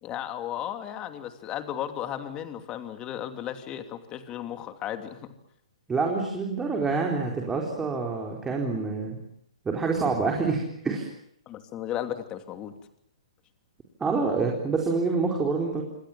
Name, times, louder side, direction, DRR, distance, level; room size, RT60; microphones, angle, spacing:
voice 1, 0.0-5.3 11.5-12.7, left 11 dB, 25° left, 7 dB, 2.8 m, -35 dB
voice 2, 5.9-9.2 9.6-11.0 14.0-15.8, right 4 dB, 10° right, 0 dB, 4.4 m, -27 dB
28.0 x 25.0 x 7.4 m, 0.74 s
figure-of-eight pair, 125°, 3 cm